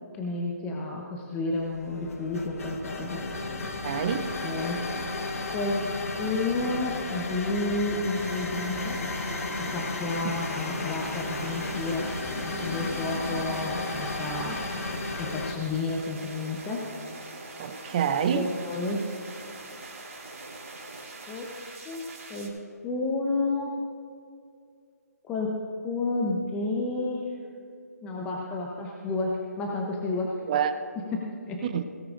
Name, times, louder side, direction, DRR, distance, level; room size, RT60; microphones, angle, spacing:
voice 1, 0.1-3.5 4.4-4.8 5.5-5.9 6.2-9.0 9.6-12.1 12.4-14.6 14.9-16.9 18.3-19.2 21.3-21.5 21.8-23.8 25.2-27.3 28.0-30.4 31.1-31.6, left 2 dB, 10° left, -1 dB, 0.7 m, -31 dB
sound 1, 1.6-15.5, left 3 dB, 60° left, 1.3 m, -33 dB
voice 2, 3.8-4.3 17.6-18.5 30.5-30.7 31.6-31.8, right 8 dB, 30° right, 10 dB, 0.6 m, -26 dB
sound 2, 8.1-22.5, right 2 dB, 55° right, 3.0 m, -43 dB
17.5 x 15.0 x 2.5 m, 2.4 s
figure-of-eight pair, 150°, 9 cm